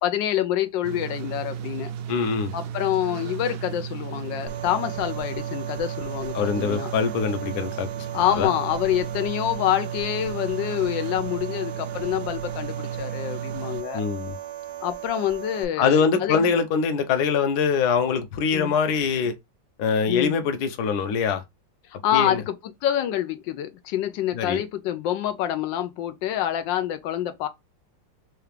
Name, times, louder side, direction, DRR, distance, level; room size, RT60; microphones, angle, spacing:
voice 1, 0.0-1.9 2.5-6.9 8.1-14.0 14.8-16.5 18.5-18.7 20.1-20.4 22.0-22.5 22.8-27.5, left 11 dB, 90° left, 1.3 m, -26 dB
sound 1, 0.8-13.8, right 8 dB, 70° right, 1.0 m, -34 dB
voice 2, 2.1-2.5 6.3-7.9 8.3-8.5 13.9-14.4 15.8-19.3 19.8-21.4 22.1-22.4 24.3-24.6, left 6 dB, 65° left, 1.2 m, -23 dB
sound 2, 4.5-15.6, right 11 dB, 90° right, 1.3 m, -37 dB
4.6 x 2.4 x 3.3 m
omnidirectional pair, 2.0 m